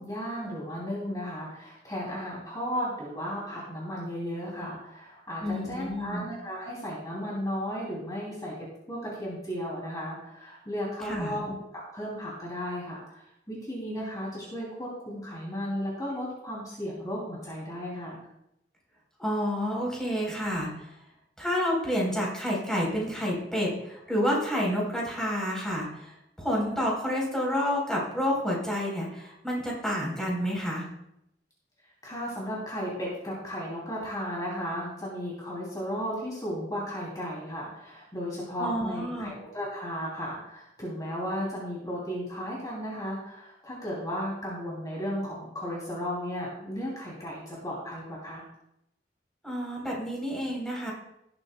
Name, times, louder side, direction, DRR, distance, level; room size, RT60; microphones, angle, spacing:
voice 1, 0.0-18.3 32.0-48.5, equal, 20° left, -5 dB, 2.8 m, -35 dB
voice 2, 5.4-6.3 11.0-11.4 19.2-20.9 21.4-30.8 38.6-39.3 49.4-50.9, equal, 5° left, -3 dB, 3.7 m, -29 dB
18.0 x 8.9 x 2.2 m, 0.81 s
head